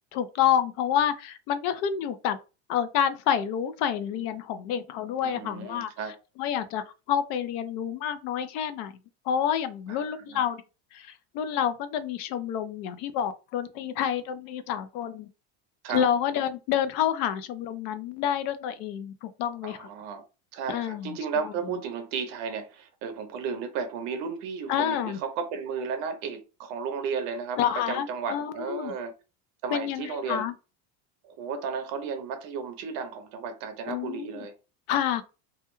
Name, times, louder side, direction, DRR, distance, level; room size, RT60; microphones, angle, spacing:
voice 1, 0.1-2.4 2.7-5.9 6.4-8.9 9.3-10.6 10.9-15.3 15.9-19.9 20.7-21.2 21.4-21.5 24.7-25.2 27.6-28.9 29.7-30.5 33.9-34.5 34.9-35.2, left 9 dB, 55° left, 0.4 m, -28 dB
voice 2, 5.2-6.2 9.9-10.4 15.8-16.0 19.6-20.2 20.5-27.6 27.9-29.2 29.6-30.5 31.2-34.5, right 5 dB, 50° right, 0.5 m, -34 dB
2.3 x 2.1 x 2.9 m
cardioid pair, 170°, 35 cm